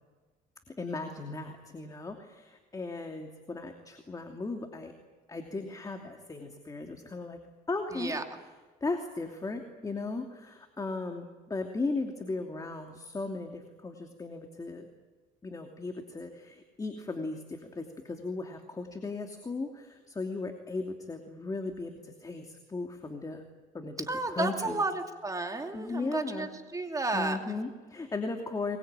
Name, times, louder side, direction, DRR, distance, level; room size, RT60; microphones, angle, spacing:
voice 1, 0.7-4.9 5.3-7.4 7.7-8.2 8.8-14.9 15.4-23.4 23.7-24.8 25.7-26.5 27.1-28.8, left 3 dB, 20° left, 4 dB, 2.7 m, -37 dB
voice 2, 7.9-8.2 24.1-27.6, right 2 dB, 20° right, 4 dB, 2.7 m, -32 dB
23.0 x 23.0 x 9.0 m, 1.3 s
cardioid pair, 110°, 17 cm